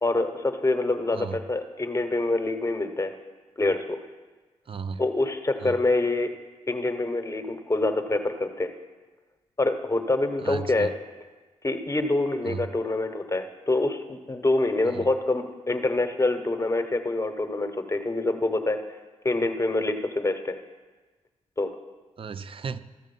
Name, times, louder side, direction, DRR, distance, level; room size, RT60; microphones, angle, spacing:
voice 1, 0.0-3.1 3.6-4.0 5.0-6.3 6.7-8.7 9.6-10.9 11.6-18.8 19.2-20.5 21.6-21.7, left 2 dB, 25° left, 7 dB, 1.0 m, -26 dB
voice 2, 4.7-5.0 5.6-5.7 10.4-10.9 12.4-12.7 14.9-15.1 22.2-22.8, right 5 dB, 45° right, 12 dB, 0.6 m, -34 dB
13.5 x 6.4 x 5.4 m, 1.3 s
cardioid pair, 70°, 12 cm